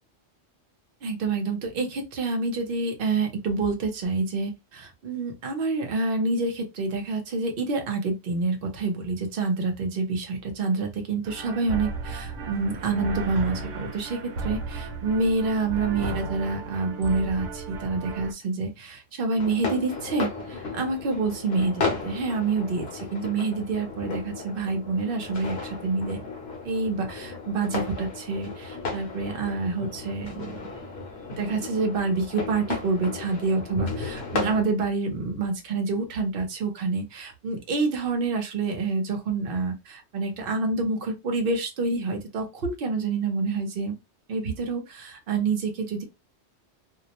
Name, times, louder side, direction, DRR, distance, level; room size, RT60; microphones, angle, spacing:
voice 1, 1.0-26.2 26.6-30.7 31.4-44.0 44.3-46.0, right 3 dB, 55° right, 0.8 m, -27 dB
sound 1, 11.2-18.3, right 2 dB, 80° right, 0.9 m, -34 dB
sound 2, 19.3-34.6, left 4 dB, 60° left, 0.9 m, -34 dB
2.5 x 2.0 x 2.8 m
omnidirectional pair, 1.3 m